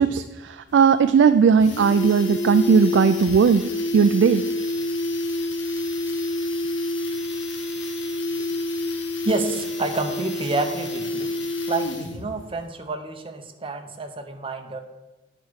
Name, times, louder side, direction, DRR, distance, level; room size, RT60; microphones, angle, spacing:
voice 1, 0.0-3.6 3.9-4.4, right 6 dB, 70° right, 10 dB, 0.3 m, -17 dB
sound 1, 0.7-0.8 1.1-1.2 1.5-12.3 12.6-12.7, left 2 dB, 70° left, 1.2 m, -28 dB
voice 2, 9.2-11.4 11.7-14.8, right 2 dB, 30° right, 6 dB, 0.8 m, -29 dB
9.2 x 4.8 x 6.3 m, 1.1 s
head